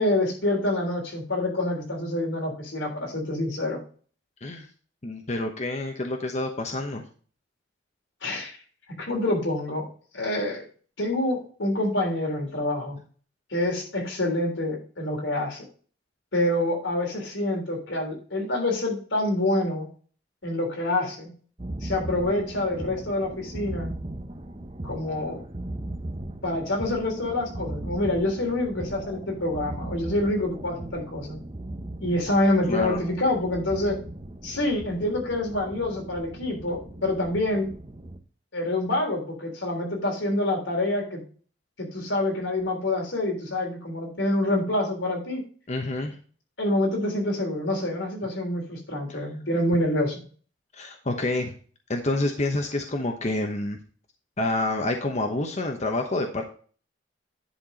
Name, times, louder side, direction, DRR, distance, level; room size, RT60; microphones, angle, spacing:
voice 1, 0.0-3.8 8.2-8.6 9.0-9.9 10.1-10.6 11.0-13.0 13.5-15.6 16.3-19.9 20.4-21.3 21.8-23.9 24.8-25.4 26.4-31.4 32.0-34.0 34.4-37.7 38.5-41.2 41.8-45.4 46.6-50.2, left 1 dB, 90° left, 0 dB, 3.5 m, -26 dB
voice 2, 5.0-7.0 32.7-33.0 45.7-46.2 50.8-51.5 51.9-53.8 54.4-56.4, left 2 dB, 40° left, 4 dB, 1.0 m, -28 dB
Outside an urban rave, 21.6-38.2, right 1 dB, 30° right, 1.0 m, -38 dB
10.5 x 4.5 x 5.3 m, 0.42 s
head